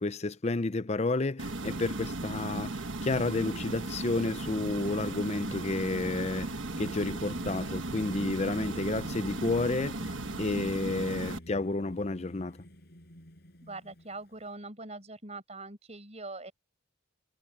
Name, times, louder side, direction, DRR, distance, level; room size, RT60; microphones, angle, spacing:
voice 1, 0.0-12.6, left 2 dB, 35° left, 0.6 m, -31 dB
sound 1, 1.4-11.4, right 2 dB, 70° right, 1.4 m, -36 dB
Singing, 4.1-14.5, equal, 55° left, 7.8 m, -50 dB
voice 2, 13.6-16.5, right 3 dB, 35° right, 5.6 m, -43 dB
head